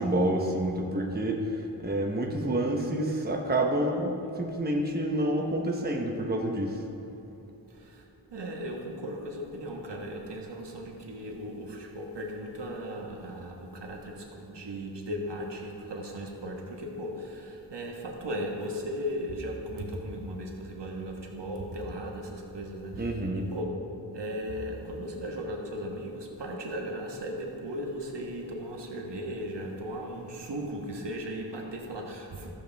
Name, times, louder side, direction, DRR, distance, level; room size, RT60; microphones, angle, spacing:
voice 1, 0.0-1.4 1.8-6.8 23.0-23.5, right 1 dB, 20° right, 0 dB, 1.0 m, -28 dB
voice 2, 7.7-8.0 8.3-23.7 24.1-32.5, equal, 70° right, 0 dB, 1.4 m, -37 dB
14.5 x 7.2 x 3.5 m, 2.8 s
wide cardioid pair, 90°, 43 cm